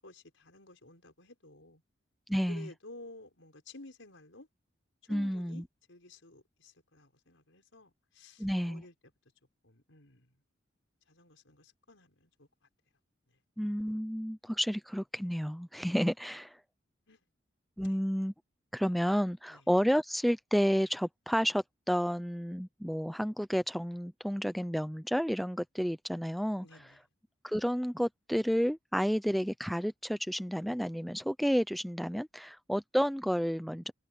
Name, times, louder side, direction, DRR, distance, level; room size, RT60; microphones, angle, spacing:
voice 1, 0.0-1.8 2.5-4.5 5.1-8.9 9.6-10.3 11.1-12.5 17.1-17.2 17.8-18.0 19.5-19.6 26.6-27.0, left 2 dB, 80° left, 5.2 m, -53 dB
voice 2, 2.3-2.7 5.1-5.6 8.4-8.8 13.6-16.6 17.8-18.3 18.7-26.7 27.4-33.9, equal, ahead, 0.6 m, -31 dB
head